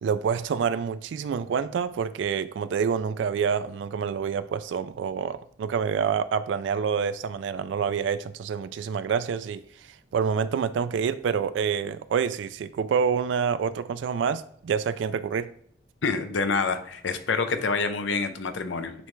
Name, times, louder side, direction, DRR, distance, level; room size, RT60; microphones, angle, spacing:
voice 1, 0.0-9.6 10.1-15.5, right 6 dB, 70° right, 0.3 m, -27 dB
voice 2, 16.0-18.9, left 4 dB, 80° left, 0.7 m, -27 dB
9.2 x 3.3 x 3.2 m
head